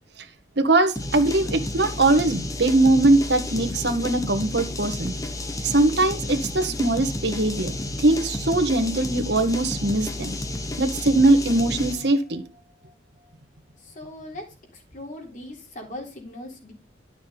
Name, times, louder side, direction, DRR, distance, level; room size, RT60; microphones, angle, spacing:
voice 1, 0.6-5.1 5.6-10.4 10.8-12.4, right 2 dB, 65° right, 6 dB, 1.6 m, -21 dB
sound 1, 1.0-12.1, left 1 dB, 20° left, 1.0 m, -31 dB
voice 2, 13.8-14.5 14.7-16.7, left 1 dB, 45° left, 1 dB, 3.6 m, -39 dB
12.0 x 6.3 x 4.0 m, 0.30 s
head